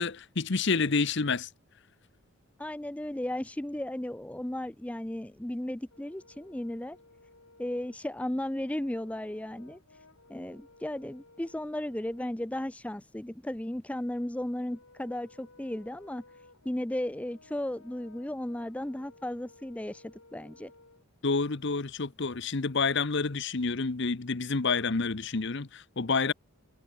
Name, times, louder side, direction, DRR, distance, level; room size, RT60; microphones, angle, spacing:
voice 1, 0.0-1.5 21.2-26.3, left 4 dB, 55° left, 0.9 m, -28 dB
voice 2, 2.6-7.0 7.6-9.8 10.3-16.2 16.6-20.7, left 1 dB, 5° left, 0.4 m, -35 dB
Brass instrument, 5.9-12.4 14.5-21.1, left 3 dB, 75° left, 4.0 m, -58 dB
head